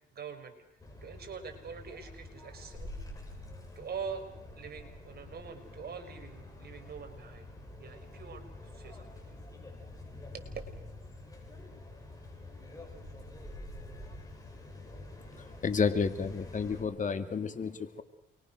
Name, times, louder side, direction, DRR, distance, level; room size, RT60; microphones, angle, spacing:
voice 1, 0.1-0.5 1.0-2.9 3.8-7.5 7.8-8.4 8.7-9.4 10.3-10.5, right 6 dB, 50° right, 6 dB, 5.8 m, -44 dB
sound 1, 0.8-16.8, left 2 dB, 20° left, 7.9 m, -47 dB
voice 2, 15.6-18.0, left 5 dB, 40° left, 9 dB, 2.4 m, -31 dB
28.5 x 24.0 x 6.5 m, 0.87 s
cardioid pair, 90°, 20 cm